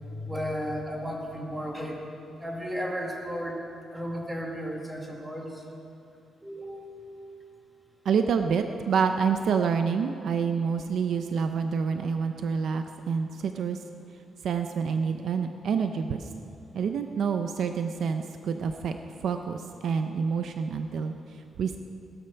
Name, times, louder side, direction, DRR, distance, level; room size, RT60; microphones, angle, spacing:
voice 1, 0.0-2.0 2.4-3.6 3.9-5.6 6.4-7.2, equal, 10° right, -1 dB, 2.2 m, -34 dB
voice 2, 8.0-13.8 14.4-16.3 16.7-19.0 19.2-21.8, right 6 dB, 60° right, 7 dB, 0.6 m, -28 dB
18.0 x 12.0 x 5.8 m, 2.7 s
cardioid pair, 155°, 0 cm